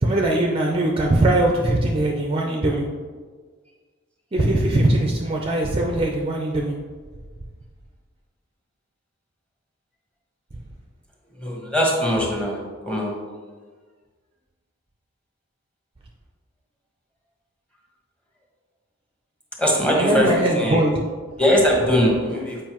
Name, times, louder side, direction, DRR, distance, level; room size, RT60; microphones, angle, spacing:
voice 1, 0.0-2.9 4.3-6.8 19.9-20.9, right 1 dB, 25° right, 0 dB, 0.5 m, -21 dB
voice 2, 11.4-13.1 19.6-20.8 21.4-22.6, equal, 5° left, -2 dB, 1.2 m, -21 dB
7.5 x 4.8 x 3.0 m, 1.5 s
head